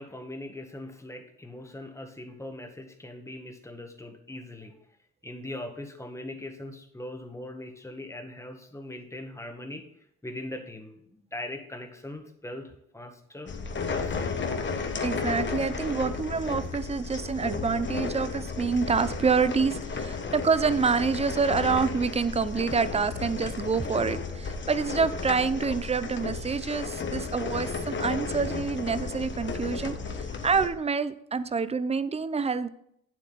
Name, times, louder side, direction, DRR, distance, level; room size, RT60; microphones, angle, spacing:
voice 1, 0.0-4.7 5.2-9.8 10.2-13.5 13.9-14.2 20.2-20.3, left 1 dB, 10° left, 4 dB, 1.6 m, -40 dB
sound 1, 13.5-30.7, left 4 dB, 40° left, 1.2 m, -33 dB
voice 2, 15.0-30.2 30.4-32.7, right 5 dB, 20° right, 14 dB, 0.6 m, -27 dB
9.0 x 7.6 x 4.0 m, 0.72 s
cardioid pair, 90°, 30 cm